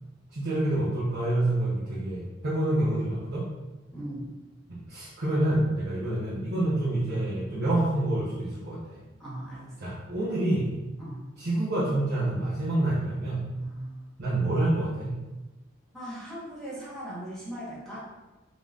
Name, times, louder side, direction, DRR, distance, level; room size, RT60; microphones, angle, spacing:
voice 1, 0.3-3.5 4.7-8.8 9.8-10.7 11.4-13.5 14.2-15.2, right 1 dB, 60° right, -10 dB, 1.0 m, -27 dB
voice 2, 3.9-4.3 9.2-9.7 11.0-11.2 13.6-14.1 15.9-18.0, right 1 dB, ahead, -9 dB, 1.3 m, -39 dB
3.9 x 3.5 x 2.5 m, 1.1 s
head